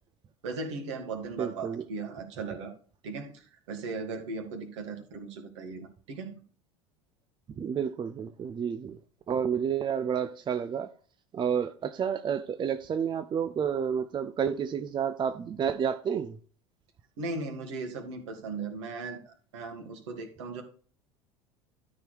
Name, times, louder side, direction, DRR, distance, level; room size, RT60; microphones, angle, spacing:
voice 1, 0.4-2.7 3.0-6.3 17.2-20.6, right 3 dB, 70° right, 2.5 m, -37 dB
voice 2, 1.4-1.8 7.5-9.0 9.3-10.9 11.3-16.4, right 7 dB, 30° right, 0.7 m, -30 dB
12.5 x 4.6 x 5.0 m
figure-of-eight pair, 75°, 16 cm